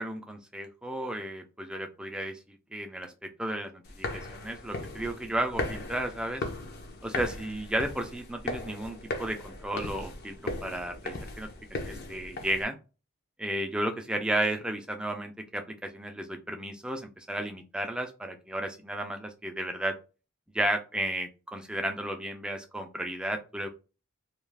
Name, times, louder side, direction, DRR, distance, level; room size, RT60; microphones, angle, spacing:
voice 1, 0.0-6.4 7.0-12.8 13.4-20.0 20.5-23.7, right 1 dB, 5° right, 5 dB, 0.3 m, -33 dB
sound 1, 3.9-12.6, left 2 dB, 45° left, 0.5 m, -38 dB
2.3 x 2.3 x 3.2 m, 0.32 s
head